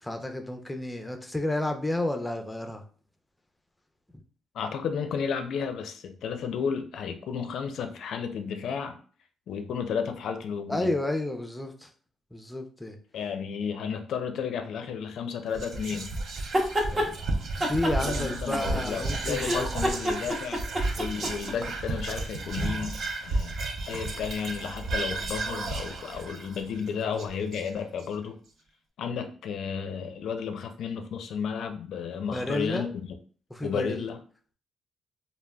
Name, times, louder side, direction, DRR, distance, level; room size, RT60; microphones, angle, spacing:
voice 1, 0.0-2.8 10.7-11.9 12.3-13.0 16.9-17.2 17.7-20.0 32.3-32.8 33.5-34.1, left 1 dB, 10° left, 5 dB, 0.5 m, -31 dB
voice 2, 4.5-9.0 9.5-10.9 13.1-16.1 18.0-20.6 21.0-23.6 23.9-28.3 29.0-32.9 33.6-34.2, left 6 dB, 70° left, 6 dB, 0.4 m, -33 dB
Whispering, 15.5-28.0, right 2 dB, 65° right, 0.5 m, -33 dB
sound 1, 16.4-17.1 17.6-19.0 19.3-21.5, equal, 30° right, 0.7 m, -28 dB
3.3 x 2.2 x 2.2 m, 0.43 s
cardioid pair, 90°, 0 cm